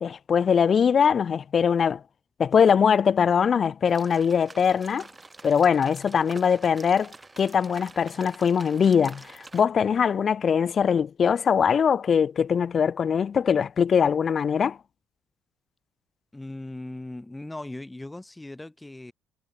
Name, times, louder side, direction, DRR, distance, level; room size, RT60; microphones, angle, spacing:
voice 1, 0.0-2.0 2.4-5.1 5.4-14.8, left 7 dB, 50° left, 0.3 m, -22 dB
sound 1, 3.9-9.6, right 3 dB, 25° right, 3.4 m, -47 dB
voice 2, 16.3-19.1, left 2 dB, 15° left, 5.5 m, -38 dB
hypercardioid pair, 50°, 0 cm